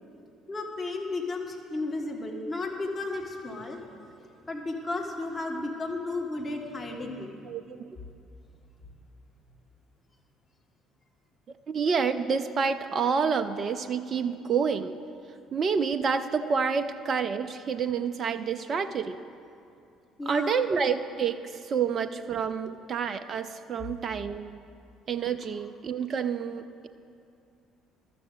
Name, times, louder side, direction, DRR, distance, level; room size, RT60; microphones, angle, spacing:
voice 1, 0.5-3.8 4.2-7.3 20.2-20.6, left 2 dB, 30° left, 0 dB, 1.6 m, -33 dB
voice 2, 7.4-7.8 11.7-15.0 15.5-19.2 20.3-24.6 25.1-26.9, right 6 dB, 40° right, 9 dB, 0.4 m, -28 dB
12.0 x 6.8 x 7.8 m, 2.6 s
figure-of-eight pair, 50°, 0 cm